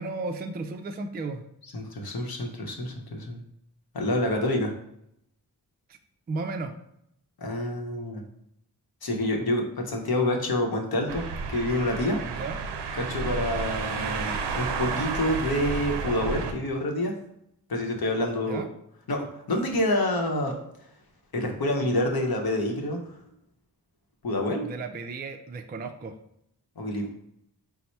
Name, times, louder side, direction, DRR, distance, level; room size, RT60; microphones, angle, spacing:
voice 1, 0.0-1.4 6.3-6.7 12.2-12.6 18.5-18.7 24.6-26.1, right 3 dB, 25° right, 6 dB, 0.3 m, -34 dB
voice 2, 1.7-3.4 3.9-4.7 7.4-8.2 9.0-11.2 11.5-12.2 13.0-17.1 17.7-18.6 19.1-20.5 21.3-23.0 24.2-24.7 26.8-27.1, left 1 dB, 60° left, 2 dB, 0.9 m, -27 dB
sound 1, 11.1-16.5, right 5 dB, 85° right, 0.5 m, -31 dB
4.0 x 2.1 x 4.3 m, 0.77 s
cardioid pair, 45°, 41 cm